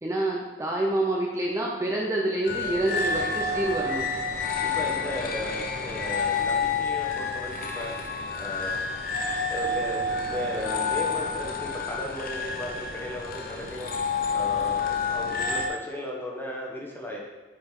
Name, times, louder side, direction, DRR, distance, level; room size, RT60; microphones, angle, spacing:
voice 1, 0.0-4.1, right 1 dB, 15° right, -2 dB, 0.6 m, -27 dB
sound 1, 2.4-15.7, left 4 dB, 55° left, 0.8 m, -29 dB
voice 2, 2.7-3.2 4.6-7.9 8.4-8.8 9.5-13.9 14.3-17.2, left 1 dB, 15° left, -2 dB, 1.2 m, -36 dB
7.5 x 5.1 x 3.7 m, 1.3 s
head